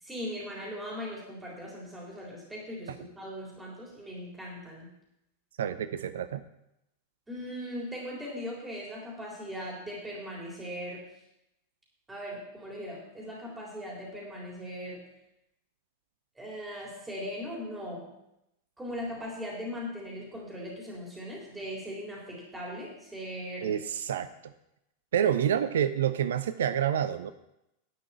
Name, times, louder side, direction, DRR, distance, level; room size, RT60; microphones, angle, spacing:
voice 1, 0.0-4.9 7.3-11.1 12.1-15.0 16.4-18.1 18.8-23.7, equal, 10° right, -3 dB, 3.8 m, -39 dB
voice 2, 5.6-6.4 23.6-24.3 25.1-27.3, right 9 dB, 60° right, 12 dB, 0.6 m, -28 dB
11.5 x 6.1 x 8.5 m, 0.85 s
figure-of-eight pair, 90°, 0 cm